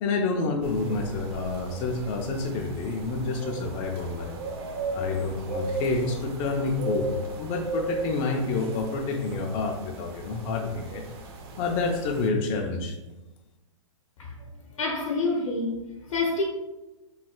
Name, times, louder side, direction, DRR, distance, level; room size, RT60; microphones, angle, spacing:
voice 1, 0.0-4.4 4.9-11.0 11.6-13.0, left 3 dB, 30° left, 0.3 m, -28 dB
sound 1, 0.6-12.3, right 2 dB, 50° right, 0.6 m, -36 dB
voice 2, 14.7-16.4, left 3 dB, 75° left, 0.7 m, -28 dB
3.1 x 2.2 x 3.6 m
hypercardioid pair, 135°, 17 cm